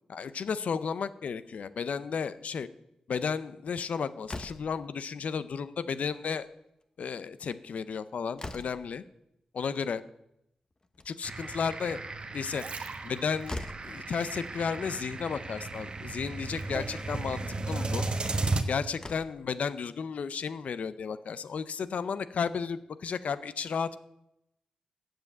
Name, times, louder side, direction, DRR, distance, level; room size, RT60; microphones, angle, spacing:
voice 1, 0.1-2.7 3.1-6.5 7.0-9.0 9.5-10.0 11.0-12.0 12.3-12.6 13.0-13.6 13.8-18.1 18.7-24.0, left 6 dB, 75° left, 14 dB, 0.6 m, -33 dB
Slam, 4.2-4.9 6.1-6.5 6.8-6.9 7.2-7.3 7.8-9.0 10.7-11.4 13.0-13.1 13.4-14.0 15.1-15.2 15.6-15.7 16.5-16.7 18.4-18.5 18.9-19.5, left 2 dB, 30° left, 0.9 m, -42 dB
sound 1, 11.2-18.6, right 3 dB, 45° right, 1.1 m, -35 dB
sound 2, 12.2-15.3 15.6-17.0 17.6-17.7, right 5 dB, 65° right, 1.0 m, -45 dB
7.6 x 7.4 x 7.9 m, 0.81 s
cardioid pair, 60°, 2 cm